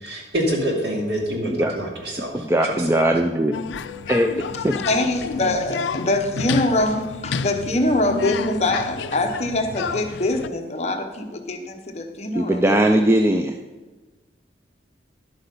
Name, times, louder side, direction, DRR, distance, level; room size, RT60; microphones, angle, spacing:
voice 1, 0.0-2.9, equal, 65° right, 2.5 m, -26 dB
voice 2, 2.3-3.5 4.1-4.3 4.6-4.7 12.3-13.5, right 1 dB, 15° right, 0.4 m, -19 dB
sound 1, 3.5-10.5, left 5 dB, 80° left, 0.4 m, -30 dB
voice 3, 4.8-13.0, left 2 dB, 35° left, 0.9 m, -24 dB
11.0 x 7.9 x 5.4 m
head